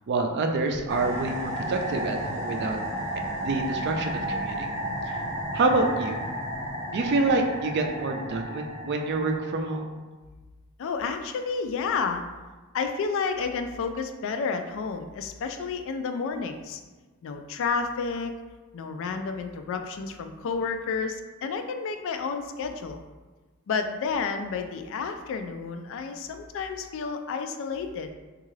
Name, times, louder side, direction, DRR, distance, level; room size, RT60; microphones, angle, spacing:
voice 1, 0.1-2.8 3.4-4.7 5.1-5.2 5.5-6.2 6.9-9.9, right 3 dB, 50° right, 4 dB, 0.4 m, -27 dB
sound 1, 0.9-9.7, right 1 dB, 15° right, 0.8 m, -33 dB
voice 2, 10.8-12.2 12.7-16.8 17.2-18.3 18.7-23.0 23.7-28.1, left 5 dB, 65° left, 6 dB, 0.3 m, -30 dB
3.6 x 2.4 x 3.1 m, 1.3 s
head